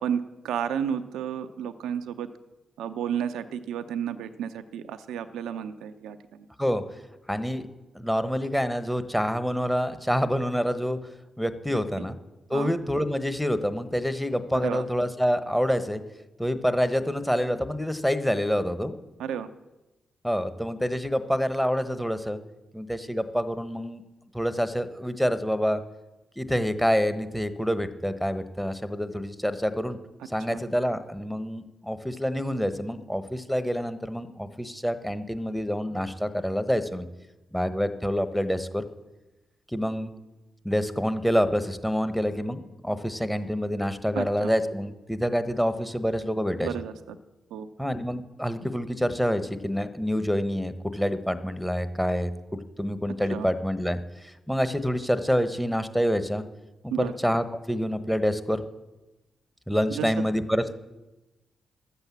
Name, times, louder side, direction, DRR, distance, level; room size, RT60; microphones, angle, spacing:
voice 1, 0.0-2.3 2.8-6.4 12.5-12.8 14.6-14.8 19.2-19.5 30.5-30.6 44.2-44.5 46.6-47.2 47.5-47.7 53.3-53.5 56.9-57.1 59.9-60.1, right 8 dB, 80° right, 9 dB, 0.6 m, -32 dB
voice 2, 7.3-7.7 7.9-11.0 11.4-12.2 12.5-16.0 16.4-18.9 20.2-22.4 22.7-24.0 24.3-25.8 26.4-30.0 30.3-37.1 37.5-38.8 39.7-40.1 40.6-46.7 47.8-56.4 56.8-58.6 59.7-60.7, equal, 5° left, 11 dB, 1.2 m, -27 dB
12.0 x 8.0 x 7.3 m, 1.1 s
hypercardioid pair, 40°, 0 cm